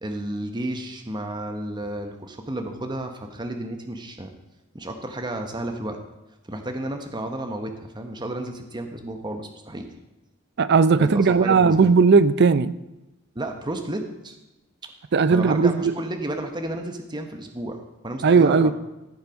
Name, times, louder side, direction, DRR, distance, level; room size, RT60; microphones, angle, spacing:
voice 1, 0.0-4.3 4.7-6.0 6.5-9.9 11.0-11.9 13.3-14.4 15.3-18.7, right 1 dB, 20° right, 1.1 m, -32 dB
voice 2, 10.6-12.7 15.1-15.9 18.2-18.7, right 5 dB, 50° right, 0.5 m, -17 dB
14.5 x 7.2 x 5.3 m
head